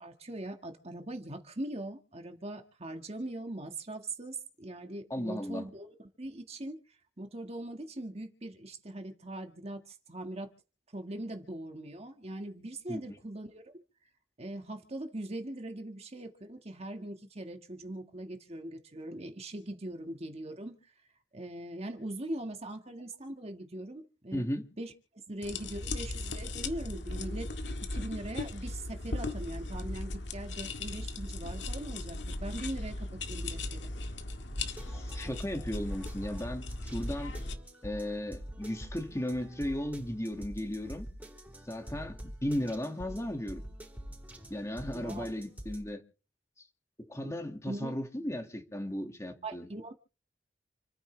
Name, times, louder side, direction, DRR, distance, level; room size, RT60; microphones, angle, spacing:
voice 1, 0.0-6.8 7.2-10.5 10.9-13.7 14.4-20.9 21.3-24.9 25.3-33.9 44.9-45.3 47.2-47.4 47.7-47.9 49.4-49.9, right 1 dB, 35° right, 1.8 m, -41 dB
voice 2, 5.1-5.6 12.9-13.2 24.3-24.7 34.9-37.4 37.8-41.1 41.7-43.6 44.5-46.0 46.6-46.7 47.1-49.7, left 1 dB, 15° left, 2.2 m, -36 dB
sound 1, 25.4-37.6, left 2 dB, 75° left, 1.9 m, -38 dB
sound 2, 34.5-45.8, equal, 10° right, 4.7 m, -46 dB
29.5 x 10.0 x 3.4 m
head